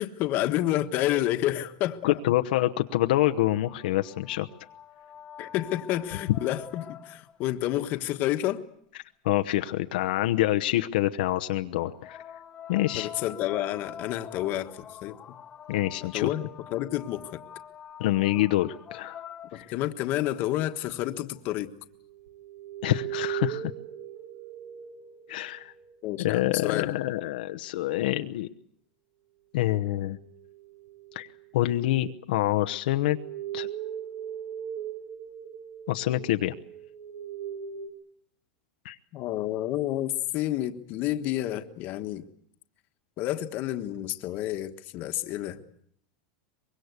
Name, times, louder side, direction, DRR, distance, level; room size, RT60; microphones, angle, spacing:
voice 1, 0.0-2.0 5.4-8.6 12.9-15.2 16.0-16.4 16.7-17.4 19.5-21.7 26.0-26.9 39.1-42.2 43.2-45.6, left 14 dB, 40° left, 8 dB, 1.4 m, -29 dB
voice 2, 2.0-4.5 9.2-12.2 12.7-13.1 15.7-16.3 18.0-19.2 19.5-19.7 22.8-23.7 25.3-25.7 26.2-28.5 29.5-30.2 31.1-31.3 31.5-33.2 33.5-33.7 35.9-36.5 38.8-39.0, left 15 dB, 75° left, 7 dB, 0.9 m, -26 dB
sound 1, 2.7-7.5 11.8-20.0 21.4-21.5, left 9 dB, 20° left, 1.2 m, -46 dB
sound 2, 21.8-26.0 30.0-31.5 32.4-37.9, right 10 dB, 70° right, 3.9 m, -39 dB
24.0 x 22.0 x 8.2 m, 0.68 s
supercardioid pair, 155°, 5 cm